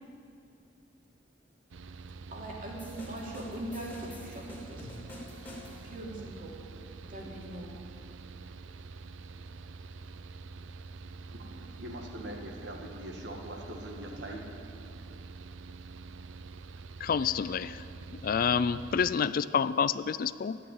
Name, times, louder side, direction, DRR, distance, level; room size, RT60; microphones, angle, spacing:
Mechanical fan, 1.7-19.1, right 4 dB, 80° right, 0.5 m, -46 dB
voice 1, 2.3-4.9 5.8-6.5 7.1-7.7, right 1 dB, 45° right, -2 dB, 3.0 m, -41 dB
sound 1, 2.8-6.0, left 1 dB, 10° left, 3.0 m, -47 dB
voice 2, 11.3-14.4, right 1 dB, 60° right, 1 dB, 1.9 m, -42 dB
voice 3, 17.0-17.9 18.2-20.6, left 6 dB, 50° left, 15 dB, 0.3 m, -28 dB
14.0 x 9.2 x 9.5 m, 2.5 s
head